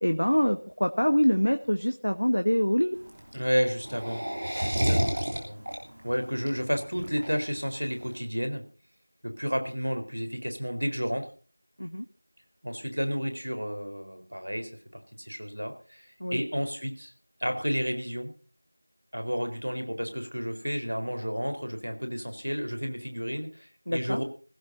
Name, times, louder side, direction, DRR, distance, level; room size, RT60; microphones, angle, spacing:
voice 1, 0.0-3.0 11.8-12.0 16.2-16.4 23.9-24.2, equal, 75° left, 6 dB, 1.1 m, -25 dB
sound 1, 2.9-8.1, equal, 25° right, 2.9 m, -30 dB
voice 2, 3.3-4.3 4.6-5.6 6.0-8.7 9.2-11.3 12.6-17.1 17.4-18.3 19.1-24.2, equal, 85° right, 7 dB, 4.3 m, -31 dB
20.5 x 16.0 x 2.7 m, 0.38 s
figure-of-eight pair, 175°, 0 cm